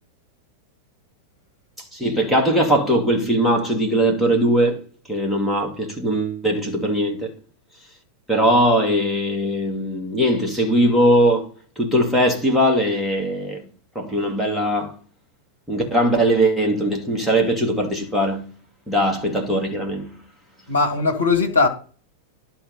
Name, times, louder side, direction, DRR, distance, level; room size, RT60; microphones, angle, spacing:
voice 1, 1.9-4.8 5.1-7.3 8.3-11.5 11.8-13.6 13.9-15.0 15.7-18.5 18.9-20.2, right 1 dB, ahead, 2.6 m, -20 dB
voice 2, 20.7-21.7, left 4 dB, 75° left, 2.1 m, -19 dB
11.5 x 4.7 x 5.5 m
figure-of-eight pair, 90°, 0 cm